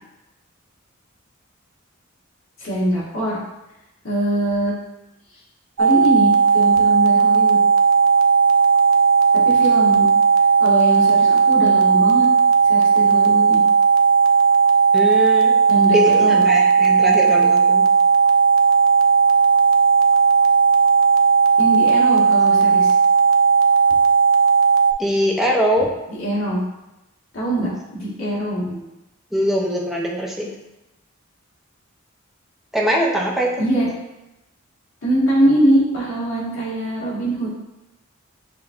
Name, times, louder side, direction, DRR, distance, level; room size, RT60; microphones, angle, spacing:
voice 1, 2.6-3.4 4.0-4.7 5.8-7.6 9.4-10.1 10.6-12.3 12.7-13.6 15.7-16.4 21.6-22.9 26.1-26.6 27.3-28.7 33.6-33.9 35.0-37.5, right 1 dB, 75° left, -6 dB, 1.4 m, -22 dB
sound 1, 5.8-24.9, right 5 dB, 80° right, 0.4 m, -15 dB
voice 2, 14.9-15.6 15.9-17.9 25.0-25.9 28.5-28.8 29.3-30.5 32.7-33.5, equal, ahead, -3 dB, 0.5 m, -22 dB
6.7 x 2.6 x 2.4 m, 0.94 s
head